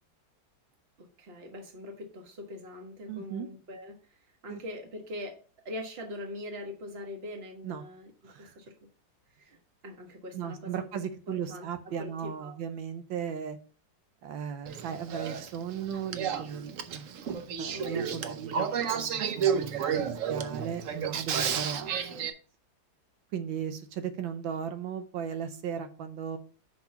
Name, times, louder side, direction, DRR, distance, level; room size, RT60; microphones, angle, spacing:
voice 1, 1.0-5.4 5.6-8.1 8.4-8.7 9.4-9.6 9.8-10.8 11.3-11.7 12.0-12.6 17.7-18.1 20.7-20.8, left 1 dB, 35° right, 4 dB, 1.4 m, -42 dB
voice 2, 3.1-3.5 4.5-4.6 7.6-7.8 8.3-8.6 10.3-13.6 14.2-17.1 17.6-22.3 23.3-26.4, right 8 dB, 85° right, 9 dB, 1.5 m, -37 dB
Male speech man speaking / Female speech woman speaking / Conversation, 14.7-22.3, right 7 dB, 60° right, 0.9 m, -32 dB
5.4 x 5.2 x 5.7 m, 0.38 s
omnidirectional pair, 2.1 m